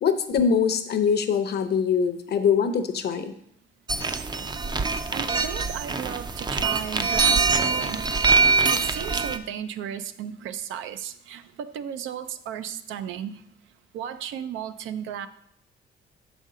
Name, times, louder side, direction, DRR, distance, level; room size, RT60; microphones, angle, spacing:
voice 1, 0.0-3.3, left 6 dB, 55° left, 9 dB, 0.7 m, -23 dB
sound 1, 3.9-9.4, right 4 dB, 20° right, 0.4 m, -23 dB
voice 2, 5.1-8.1 8.7-13.4 13.9-15.3, right 9 dB, 85° right, 11 dB, 0.5 m, -35 dB
6.4 x 5.1 x 3.7 m, 0.72 s
cardioid pair, 90°, 20 cm